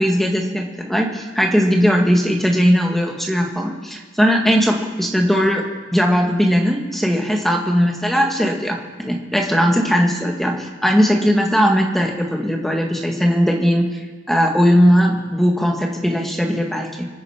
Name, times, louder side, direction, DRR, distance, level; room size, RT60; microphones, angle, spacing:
voice 1, 0.0-5.6 5.9-13.9 14.3-17.0, equal, ahead, 1 dB, 2.0 m, -18 dB
26.0 x 9.3 x 5.1 m, 1.5 s
head